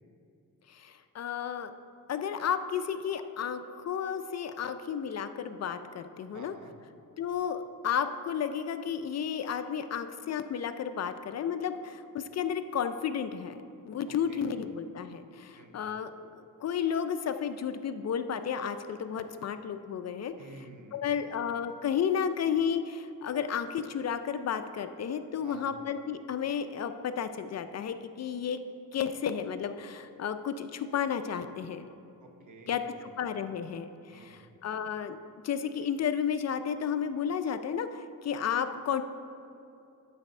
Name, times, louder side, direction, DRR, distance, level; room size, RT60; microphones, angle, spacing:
voice 1, 0.7-1.7 2.1-6.5 7.2-13.6 13.8-20.3 20.9-28.6 28.9-31.9 32.7-35.2 35.4-39.0, left 7 dB, 50° left, 9 dB, 0.4 m, -32 dB
voice 2, 6.3-6.7 14.1-14.5 15.5-15.8 20.4-21.4 25.4-25.7 32.2-32.9 34.1-34.4, right 3 dB, 60° right, 4 dB, 1.1 m, -51 dB
12.0 x 4.1 x 5.4 m, 2.7 s
cardioid pair, 115°, 34 cm